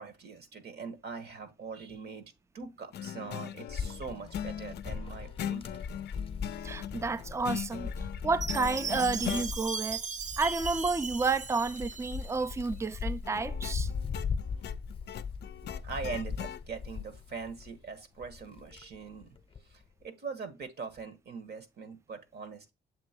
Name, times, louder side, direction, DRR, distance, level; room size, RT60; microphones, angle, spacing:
voice 1, 0.0-5.8 15.4-15.5 15.8-19.3 19.6-22.7, right 5 dB, 55° right, 1.6 m, -42 dB
sound 1, 2.9-9.5 13.2-16.6, left 10 dB, 55° left, 0.4 m, -40 dB
Wind, 3.7-17.8 18.2-19.7, left 5 dB, 30° left, 0.8 m, -39 dB
voice 2, 6.6-7.9 8.2-10.0 10.4-13.9, right 4 dB, 15° right, 0.4 m, -31 dB
Chime, 8.4-12.5, right 5 dB, 40° right, 0.7 m, -38 dB
7.5 x 3.0 x 4.5 m
cardioid pair, 90°, 20 cm